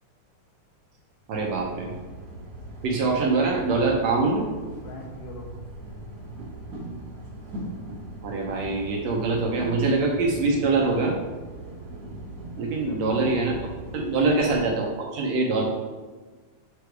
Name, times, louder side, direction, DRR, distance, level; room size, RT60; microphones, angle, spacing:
sound 1, 1.3-14.7, right 1 dB, 40° right, 1.3 m, -39 dB
voice 1, 1.3-1.9 2.8-4.5 8.2-11.1 12.6-14.9 15.1-15.6, right 3 dB, 70° right, -1 dB, 1.8 m, -24 dB
voice 2, 4.8-5.5 12.5-13.0 14.0-14.3, left 2 dB, 85° left, -1 dB, 1.3 m, -43 dB
7.7 x 3.4 x 4.6 m, 1.3 s
omnidirectional pair, 3.6 m